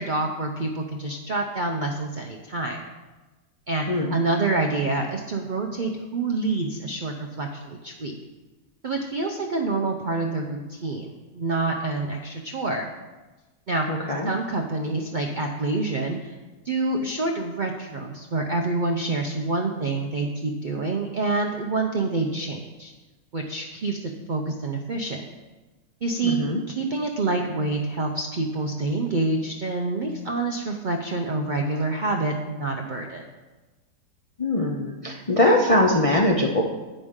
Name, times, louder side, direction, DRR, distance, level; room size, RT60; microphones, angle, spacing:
voice 1, 0.0-2.8 3.7-8.1 8.8-12.9 13.7-13.9 14.3-16.3 16.6-22.9 23.3-25.2 26.0-26.4 26.7-33.2, right 3 dB, 65° right, 2 dB, 0.4 m, -27 dB
voice 2, 3.9-4.2 13.9-14.3 26.2-26.6 34.4-36.6, left 1 dB, 65° left, -2 dB, 0.3 m, -22 dB
10.5 x 8.0 x 3.7 m, 1.2 s
omnidirectional pair, 1.8 m